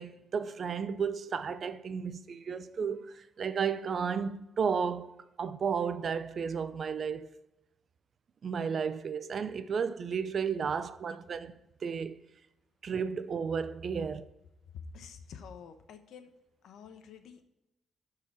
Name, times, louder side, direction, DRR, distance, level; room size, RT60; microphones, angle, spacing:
voice 1, 0.0-7.3 8.4-11.5 11.8-12.2 12.8-14.2, right 6 dB, 50° right, 0.6 m, -33 dB
voice 2, 14.7-16.3 16.6-17.4, left 6 dB, 80° left, 1.0 m, -48 dB
12.5 x 4.8 x 4.8 m
cardioid pair, 105°, 0 cm